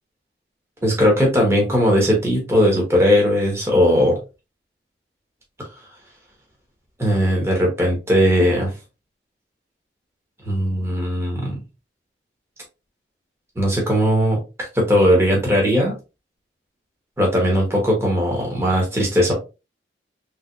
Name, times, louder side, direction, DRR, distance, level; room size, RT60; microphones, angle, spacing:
voice 1, 0.8-4.2 7.0-8.7 10.4-11.6 13.6-16.0 17.2-19.3, equal, 15° right, -1 dB, 1.2 m, -18 dB
3.6 x 3.3 x 2.5 m, 0.28 s
head